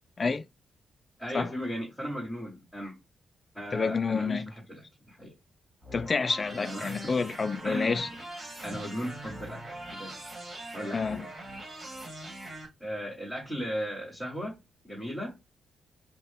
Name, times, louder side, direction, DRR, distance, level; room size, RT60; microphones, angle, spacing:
voice 1, 1.2-2.9 3.5-5.3 6.5-7.1 7.6-8.0 8.6-10.1 10.7-11.3 12.8-14.6 14.8-15.4, equal, 5° left, 1.7 m, -36 dB
voice 2, 3.7-4.5 5.9-8.1 10.9-11.2, left 4 dB, 35° left, 0.3 m, -28 dB
sound 1, 5.8-12.6, right 1 dB, 25° right, 1.7 m, -42 dB
5.1 x 2.2 x 3.5 m
cardioid pair, 125°, 0 cm